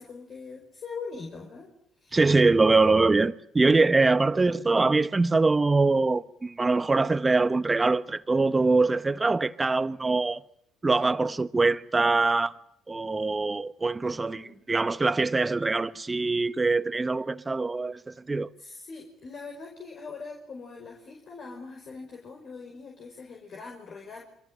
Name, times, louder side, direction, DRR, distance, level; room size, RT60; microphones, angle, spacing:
voice 1, 0.0-1.7 2.0-2.2 14.3-14.6 18.6-24.2, left 4 dB, 50° left, 5.4 m, -42 dB
voice 2, 2.1-10.4 10.8-12.5 12.9-18.5, right 3 dB, 20° right, 1.3 m, -23 dB
27.5 x 25.5 x 7.7 m
hypercardioid pair, 55°, 0 cm